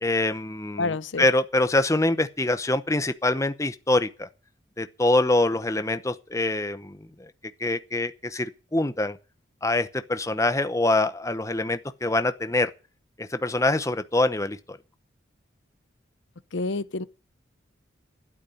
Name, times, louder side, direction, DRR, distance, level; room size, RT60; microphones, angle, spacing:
voice 1, 0.0-4.3 4.8-7.3 7.6-9.2 9.6-12.7 13.2-14.8, left 2 dB, 15° left, 0.8 m, -25 dB
voice 2, 0.8-1.3 16.5-17.0, left 3 dB, 70° left, 0.7 m, -28 dB
12.5 x 8.7 x 9.3 m
head